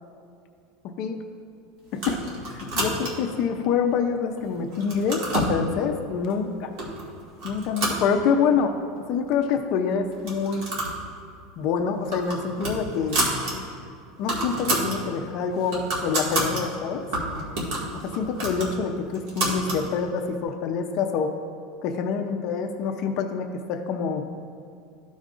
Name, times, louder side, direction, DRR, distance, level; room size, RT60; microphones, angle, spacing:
voice 1, 0.8-1.2 1.9-2.2 2.5-6.7 7.4-8.8 9.1-10.6 11.6-13.2 14.2-17.0 18.0-21.3 21.8-24.2, left 6 dB, 45° left, 5 dB, 0.5 m, -26 dB
sound 1, 1.9-3.4 3.9-4.4 4.7-5.6 6.3-6.4 6.8-7.1 7.4-8.6 9.0-9.1 9.3-9.4 10.1-11.0 11.3-11.5 11.9-13.5 13.9-14.0 14.2-15.0 15.4-16.6 17.1-19.8, right 2 dB, 65° right, 2.0 m, -29 dB
14.0 x 5.1 x 2.5 m, 2.3 s
supercardioid pair, 155°, 0 cm